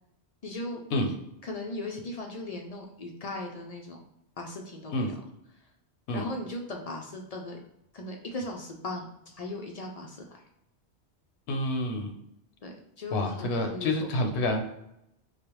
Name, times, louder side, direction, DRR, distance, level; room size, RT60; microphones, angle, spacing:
voice 1, 0.4-0.8 1.4-4.0 4.4-5.1 6.1-7.6 7.9-10.4 12.6-13.9, left 2 dB, 50° left, 1 dB, 0.4 m, -38 dB
voice 2, 11.5-12.1 13.1-14.6, left 1 dB, 80° left, 4 dB, 0.9 m, -28 dB
4.8 x 2.1 x 3.0 m, 0.82 s
omnidirectional pair, 1.1 m